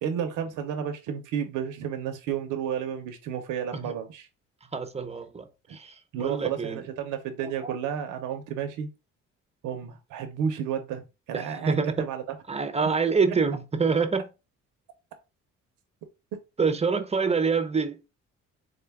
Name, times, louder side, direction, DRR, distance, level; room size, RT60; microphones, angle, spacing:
voice 1, 0.0-4.3 6.1-8.9 9.6-12.4, right 8 dB, 90° right, 0.7 m, -32 dB
voice 2, 4.7-6.8 7.4-7.8 11.3-12.0 12.5-14.3 16.6-18.0, right 5 dB, 20° right, 0.5 m, -26 dB
3.7 x 2.2 x 3.4 m
cardioid pair, 90°, 30 cm